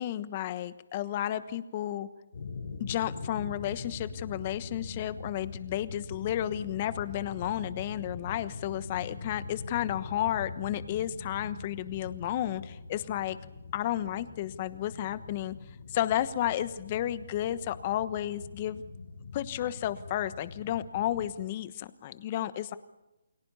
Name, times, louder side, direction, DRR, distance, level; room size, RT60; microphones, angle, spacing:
voice 1, 0.0-2.1 2.8-13.4 13.7-15.5 15.9-18.8 19.3-22.8, left 12 dB, 35° left, 14 dB, 1.2 m, -32 dB
sound 1, 2.3-21.3, left 4 dB, 75° left, 6.9 m, -43 dB
29.5 x 21.5 x 5.6 m, 0.99 s
hypercardioid pair, 155°, 0 cm